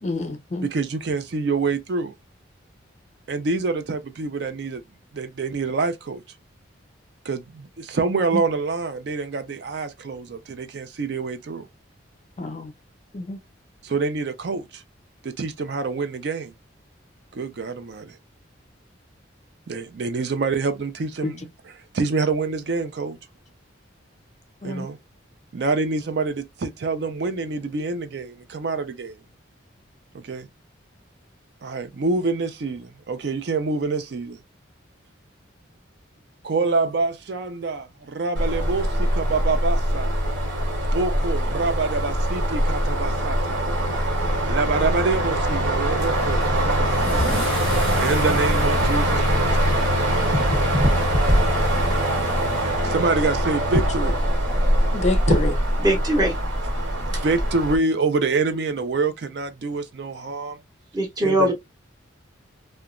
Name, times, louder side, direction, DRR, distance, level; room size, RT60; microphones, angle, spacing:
voice 1, 0.0-0.7 12.4-12.7 13.1-13.4 21.2-21.3 24.6-24.9 52.8-52.9 54.9-55.6, left 2 dB, 35° left, 0.4 m, -27 dB
voice 2, 0.6-2.1 3.3-4.8 5.1-6.2 7.2-11.7 13.8-14.8 15.2-16.5 17.3-18.2 19.7-23.2 24.6-25.0 25.5-29.2 30.1-30.5 31.6-34.4 36.4-40.1 40.9-43.6 44.4-49.7 51.0-51.4 52.8-54.2 57.2-60.6 61.2-61.5, right 4 dB, 55° right, 0.4 m, -26 dB
sound 1, 38.4-57.8, equal, 80° right, 1.2 m, -22 dB
Car / Engine starting / Accelerating revving vroom, 46.0-53.3, left 1 dB, ahead, 1.0 m, -35 dB
voice 3, 55.8-56.3 60.9-61.5, right 1 dB, 20° right, 0.7 m, -21 dB
2.9 x 2.1 x 2.4 m
head